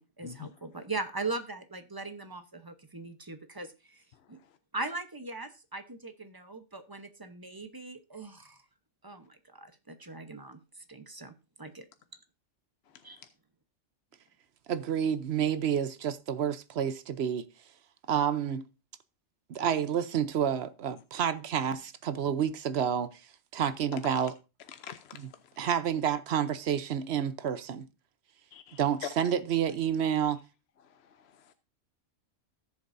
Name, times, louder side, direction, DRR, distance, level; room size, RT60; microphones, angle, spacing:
voice 1, 0.0-4.0 4.3-4.4 4.7-8.6 9.0-10.6 10.9-11.3 11.6-11.9 13.0-13.2, right 3 dB, 20° right, 0.8 m, -40 dB
voice 2, 14.7-17.5 18.1-18.6 19.5-23.2 23.5-24.4 25.2-25.3 25.6-27.9 28.8-30.4, right 8 dB, 60° right, 0.9 m, -29 dB
voice 3, 24.7-25.3 28.5-29.1 31.1-31.5, left 8 dB, 60° left, 0.9 m, -43 dB
18.0 x 7.2 x 2.6 m
omnidirectional pair, 1.3 m